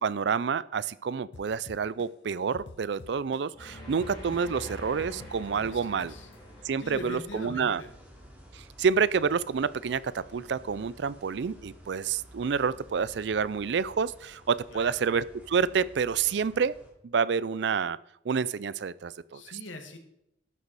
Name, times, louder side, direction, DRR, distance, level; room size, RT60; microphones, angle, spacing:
voice 1, 0.0-6.1 6.6-7.8 8.5-16.7 17.0-18.0 18.3-19.4, right 6 dB, 65° right, 19 dB, 0.4 m, -28 dB
sound 1, 1.3-3.7 4.0-6.3, left 2 dB, 65° left, 0.7 m, -48 dB
sound 2, 3.5-8.6, equal, 25° left, 3.8 m, -46 dB
sound 3, 4.0-16.9, equal, 10° right, 2.7 m, -52 dB
voice 2, 5.6-6.3 6.6-7.9 14.7-15.1 19.3-20.0, left 1 dB, 85° left, 5 dB, 1.8 m, -42 dB
12.0 x 6.5 x 4.8 m, 0.78 s
head